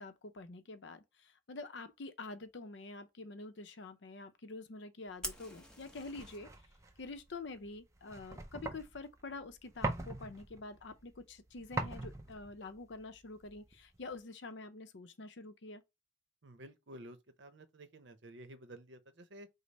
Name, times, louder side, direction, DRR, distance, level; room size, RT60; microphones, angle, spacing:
voice 1, 0.0-6.5 7.0-15.8, left 3 dB, 65° left, 0.6 m, -47 dB
Fire, 5.2-6.4, left 1 dB, 5° left, 0.8 m, -45 dB
sound 1, 5.4-14.2, right 2 dB, 15° right, 0.5 m, -44 dB
voice 2, 16.4-19.5, right 1 dB, 65° right, 0.7 m, -52 dB
5.2 x 2.0 x 4.0 m
head